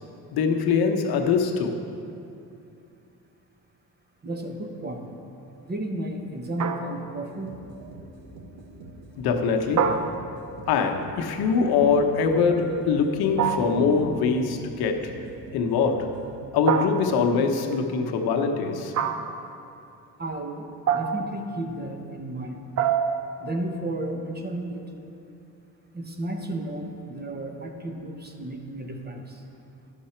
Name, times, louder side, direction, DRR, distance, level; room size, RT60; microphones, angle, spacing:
voice 1, 0.3-1.8 9.2-9.9 10.7-15.1 15.5-16.1 16.5-18.9, left 5 dB, 80° left, 3 dB, 0.9 m, -23 dB
voice 2, 4.2-5.0 5.7-7.5 20.2-20.7 20.9-22.6 23.4-24.9 25.9-29.4, right 1 dB, 25° right, 3 dB, 1.0 m, -33 dB
sound 1, 6.6-7.2 9.8-10.6 13.4-14.0 16.7-17.4 18.9-19.5 20.9-21.4 22.8-23.4, right 7 dB, 50° right, 0.6 m, -26 dB
sound 2, 7.2-16.7, right 1 dB, 80° right, 1.3 m, -45 dB
10.0 x 6.6 x 4.4 m, 2.7 s
cardioid pair, 85°, 37 cm